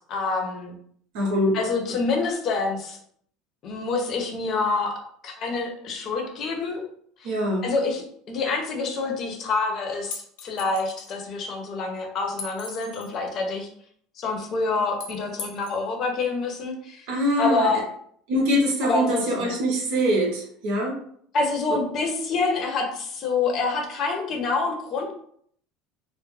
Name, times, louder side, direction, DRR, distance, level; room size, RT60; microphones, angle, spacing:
voice 1, 0.1-0.8 1.5-3.0 3.6-4.9 5.2-6.8 7.2-7.3 7.6-13.7 14.2-17.0 17.4-17.8 18.8-19.6 21.3-25.1, left 3 dB, 40° left, 2 dB, 0.6 m, -27 dB
voice 2, 1.1-1.6 7.2-7.7 17.1-17.7 18.3-21.0, equal, 65° right, -1 dB, 0.8 m, -23 dB
sound 1, 10.1-11.1 12.4-13.1 15.0-15.8, left 4 dB, 90° left, 0.6 m, -38 dB
2.3 x 2.1 x 3.1 m, 0.65 s
cardioid pair, 140°, 0 cm